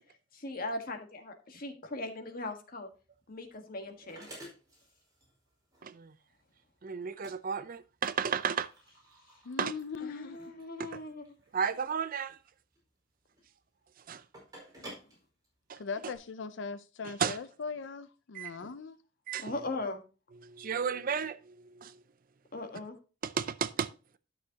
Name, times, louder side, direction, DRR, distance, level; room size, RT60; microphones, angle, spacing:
voice 1, 0.3-2.9 3.3-4.3 10.0-11.3 18.6-18.7 19.4-20.0 22.5-23.0, left 2 dB, 50° left, 1.5 m, -39 dB
sound 1, 2.9-16.2, right 1 dB, 20° right, 4.9 m, -54 dB
voice 2, 5.8-6.1 6.8-8.7 9.6-9.7 10.8-11.0 11.5-12.4 14.1-14.2 15.7-16.1 17.2-17.4 18.3-18.6 19.3-19.5 20.4-22.0 23.2-23.9, right 6 dB, 50° right, 0.5 m, -33 dB
voice 3, 9.4-10.4 15.8-19.0, left 5 dB, 70° left, 0.5 m, -40 dB
12.0 x 6.6 x 2.9 m
head